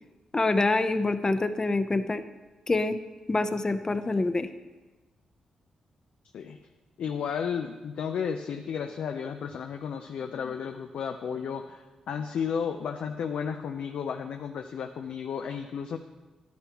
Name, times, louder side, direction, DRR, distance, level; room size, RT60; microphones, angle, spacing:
voice 1, 0.3-2.2 2.7-3.0 3.3-4.5, left 2 dB, 30° left, 10 dB, 0.7 m, -26 dB
voice 2, 7.0-16.0, left 7 dB, 75° left, 5 dB, 0.5 m, -33 dB
11.0 x 10.5 x 3.0 m, 1.2 s
cardioid pair, 60°, 2 cm